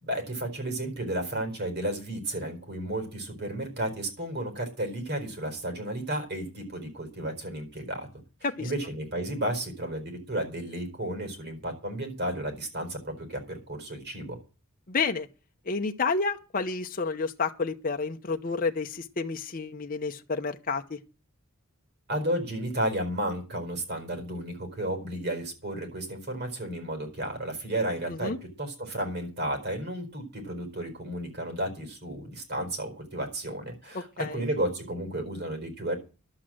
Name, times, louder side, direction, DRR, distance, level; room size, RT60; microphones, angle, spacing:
voice 1, 0.0-8.1 8.6-14.4 22.1-28.3 28.6-36.0, right 1 dB, 50° right, 4.4 m, -33 dB
voice 2, 14.9-15.3 15.7-21.0 28.1-28.4 34.2-34.4, left 4 dB, 40° left, 0.8 m, -30 dB
11.5 x 8.1 x 7.6 m
head